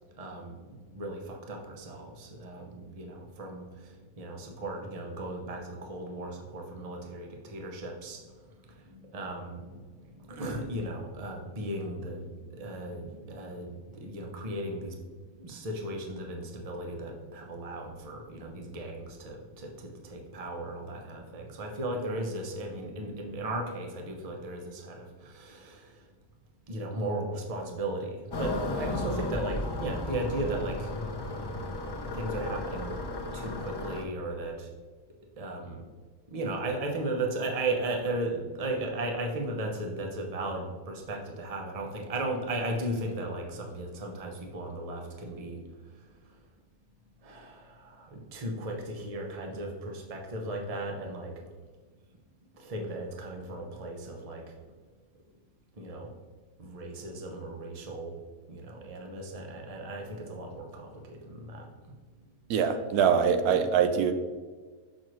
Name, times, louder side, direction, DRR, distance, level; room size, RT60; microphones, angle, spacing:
voice 1, 0.2-0.6 0.9-3.7 4.2-8.2 8.9-9.8 10.2-15.0 15.4-25.9 26.7-30.9 32.0-33.0 33.3-34.7 35.4-35.8 36.3-45.6 47.2-51.3 52.5-54.4 55.8-56.1 56.6-58.2 58.5-61.7, right 1 dB, 30° right, 2 dB, 0.8 m, -36 dB
sound 1, 28.3-34.0, left 2 dB, 40° left, 0.3 m, -34 dB
voice 2, 62.5-64.1, right 7 dB, 85° right, 7 dB, 1.1 m, -23 dB
6.4 x 6.1 x 3.1 m, 1.5 s
omnidirectional pair, 1.6 m